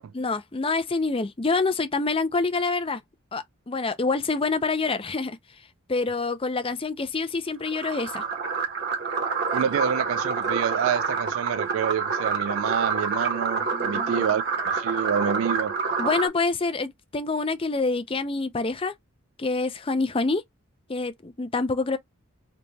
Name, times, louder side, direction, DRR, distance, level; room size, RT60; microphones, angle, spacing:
voice 1, 0.1-3.0 3.3-5.4 5.9-8.2 13.7-14.3 16.0-18.9 19.4-20.4 20.9-22.0, left 3 dB, 25° left, 0.5 m, -26 dB
sound 1, 7.7-16.3, right 5 dB, 50° right, 1.3 m, -27 dB
voice 2, 9.5-15.7, right 8 dB, 70° right, 0.3 m, -27 dB
3.4 x 2.9 x 3.9 m
head